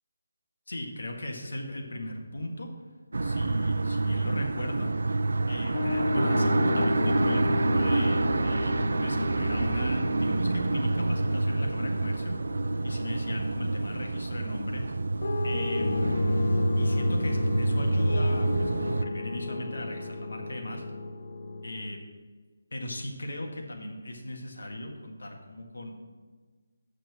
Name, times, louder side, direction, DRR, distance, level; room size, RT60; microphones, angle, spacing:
voice 1, 0.7-2.7 3.2-4.9 5.5-12.3 12.8-14.8 15.4-15.9 16.8-20.8 21.6-22.0 22.7-25.9, left 1 dB, 85° left, 2 dB, 1.8 m, -37 dB
sound 1, 3.1-19.0, right 2 dB, 65° right, 0.4 m, -27 dB
sound 2, 5.7-13.8 15.2-21.9, left 3 dB, 40° left, 0.4 m, -33 dB
7.9 x 6.0 x 6.2 m, 1.5 s
hypercardioid pair, 180°, 0 cm